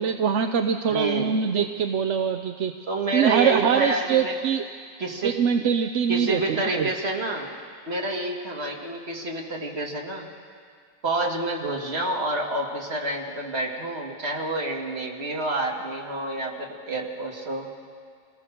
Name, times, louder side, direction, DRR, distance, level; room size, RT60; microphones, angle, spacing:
voice 1, 0.0-2.7 3.1-4.6 5.2-6.9, right 7 dB, 55° right, 6 dB, 0.9 m, -23 dB
voice 2, 0.9-1.3 2.9-4.3 5.0-5.4 6.1-7.5 7.9-10.3 11.0-17.7, right 2 dB, 40° right, 0 dB, 2.4 m, -28 dB
27.5 x 18.0 x 6.8 m, 2.1 s
omnidirectional pair, 1.6 m